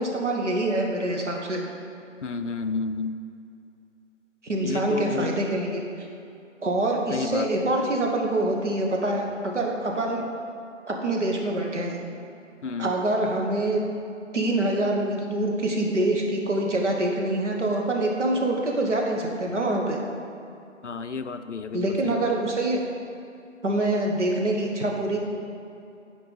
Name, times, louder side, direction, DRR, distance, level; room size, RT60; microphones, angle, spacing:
voice 1, 0.0-1.6 4.4-6.1 6.6-10.3 10.9-12.0 12.8-13.8 14.3-20.0 21.7-22.8 23.6-25.2, right 1 dB, 65° right, 0 dB, 1.4 m, -25 dB
voice 2, 2.2-3.2 4.6-5.4 7.1-7.5 12.6-12.9 20.8-22.2, left 4 dB, 65° left, 9 dB, 0.5 m, -31 dB
10.0 x 4.7 x 4.0 m, 2.6 s
figure-of-eight pair, 175°, 38 cm